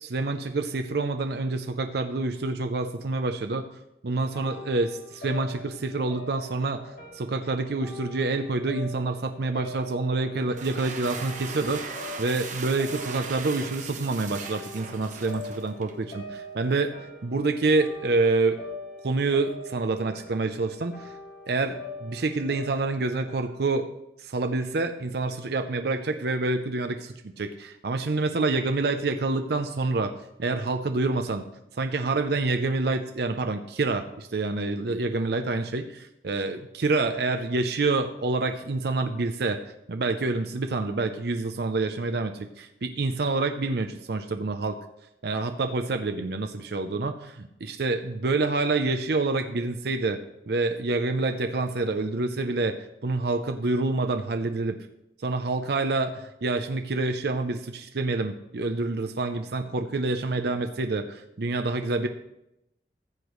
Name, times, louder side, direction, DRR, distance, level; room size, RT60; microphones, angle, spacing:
voice 1, 0.0-3.7 4.0-16.9 17.2-18.6 19.0-21.1 21.5-23.9 24.2-30.1 30.4-31.4 31.8-39.6 39.9-44.8 45.2-50.2 50.5-52.8 53.0-54.7 55.2-62.1, right 3 dB, 65° right, 7 dB, 0.6 m, -27 dB
sound 1, 4.1-23.4, left 1 dB, 55° left, 2.5 m, -43 dB
sound 2, 10.4-16.0, right 5 dB, 45° right, 1.0 m, -39 dB
15.0 x 8.1 x 3.1 m, 0.84 s
head